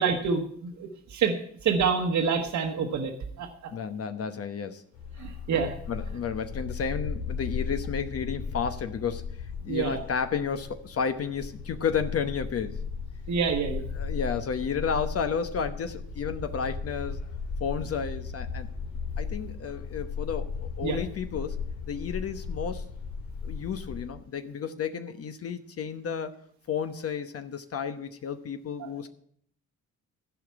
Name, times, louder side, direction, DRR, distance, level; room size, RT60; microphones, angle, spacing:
voice 1, 0.0-3.1 3.4-3.7 5.2-5.7 9.7-10.0 13.3-13.8 20.8-21.0 28.8-28.9, right 5 dB, 70° right, 4 dB, 1.5 m, -27 dB
voice 2, 3.7-4.8 5.9-12.8 13.9-17.2 17.6-18.7 19.2-21.6 21.9-22.9 23.4-26.3 26.7-29.1, left 6 dB, 50° left, 8 dB, 1.0 m, -32 dB
Bark, 4.9-24.1, left 5 dB, 80° left, 2.3 m, -36 dB
15.0 x 5.0 x 8.4 m, 0.63 s
cardioid pair, 90°, 30 cm